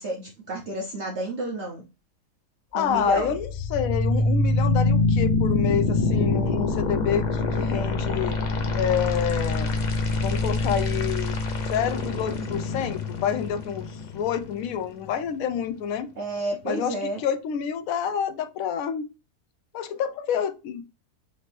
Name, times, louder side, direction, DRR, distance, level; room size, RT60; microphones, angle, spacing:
voice 1, 0.0-1.8 2.7-3.4 16.2-17.2, right 1 dB, 55° right, 0.9 m, -30 dB
voice 2, 2.7-8.4 8.7-9.7 10.2-11.3 11.7-16.1 16.6-19.0 19.7-20.9, left 8 dB, 70° left, 1.0 m, -28 dB
sound 1, 2.8-14.8, left 3 dB, 55° left, 0.5 m, -25 dB
5.1 x 2.8 x 3.2 m
omnidirectional pair, 1.6 m